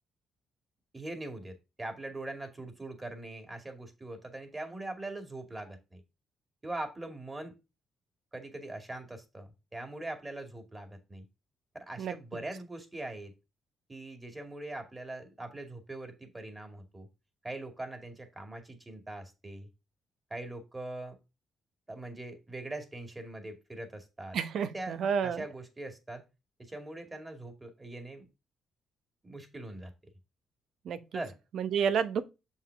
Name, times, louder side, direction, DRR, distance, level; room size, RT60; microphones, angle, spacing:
voice 1, 0.9-6.0 6.6-7.5 8.3-11.3 11.7-13.3 13.9-17.1 17.4-19.7 20.3-21.2 21.9-24.4 24.7-24.9 25.2-26.2 26.6-28.2 29.2-29.9 31.1-31.4, right 2 dB, 20° right, 2.3 m, -42 dB
voice 2, 24.3-25.4 30.8-31.0 31.5-32.2, right 7 dB, 70° right, 1.0 m, -30 dB
7.0 x 5.6 x 3.5 m
cardioid pair, 90°, 0 cm